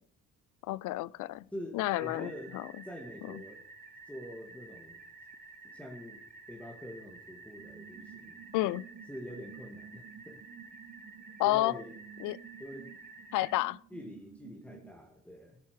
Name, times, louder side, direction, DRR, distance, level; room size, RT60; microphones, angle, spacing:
voice 1, 0.6-1.4 1.7-2.7 3.2-3.4 8.5-8.9 11.4-11.7 12.2-12.4 13.3-13.8, left 17 dB, 85° left, 0.5 m, -30 dB
voice 2, 1.5-2.6 2.8-3.6 4.1-5.0 5.6-6.2 6.5-8.4 9.1-10.4 11.4-11.9 12.6-12.9 13.9-15.6, equal, 5° left, 1.8 m, -45 dB
sound 1, 1.9-13.5, right 3 dB, 30° right, 2.7 m, -51 dB
sound 2, 7.6-14.9, right 8 dB, 55° right, 1.1 m, -53 dB
14.5 x 9.6 x 4.7 m
cardioid pair, 90°, 30 cm